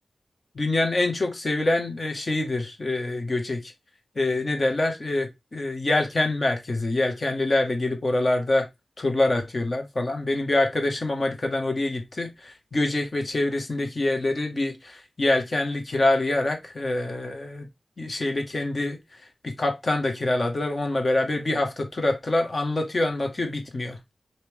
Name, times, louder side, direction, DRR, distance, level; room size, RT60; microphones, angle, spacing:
voice 1, 0.6-3.7 4.2-8.7 9.0-17.7 18.0-19.0 19.4-24.0, left 2 dB, 40° left, 1.9 m, -25 dB
5.8 x 4.7 x 3.7 m
wide cardioid pair, 105°, 0 cm